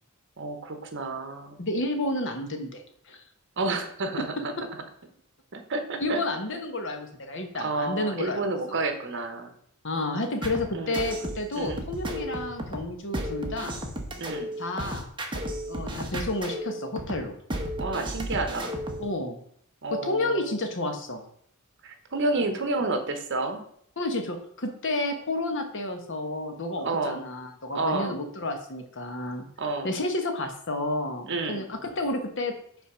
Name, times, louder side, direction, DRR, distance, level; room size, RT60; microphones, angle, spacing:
voice 1, 0.4-1.6 3.6-4.5 5.5-6.2 7.6-9.5 10.7-11.0 11.6-11.8 14.2-14.5 17.8-18.7 19.8-20.6 21.8-23.6 26.8-27.2 27.7-28.2 29.6-29.9 31.3-31.6, right 3 dB, 55° right, 7 dB, 1.0 m, -30 dB
voice 2, 1.6-3.2 6.0-8.8 9.8-13.8 14.6-15.1 15.7-17.4 19.0-19.4 20.0-21.2 24.0-29.5 29.8-32.5, left 2 dB, 60° left, 6 dB, 1.2 m, -31 dB
sound 1, 10.4-19.1, equal, 20° right, 1.0 m, -34 dB
5.8 x 4.0 x 6.2 m, 0.65 s
head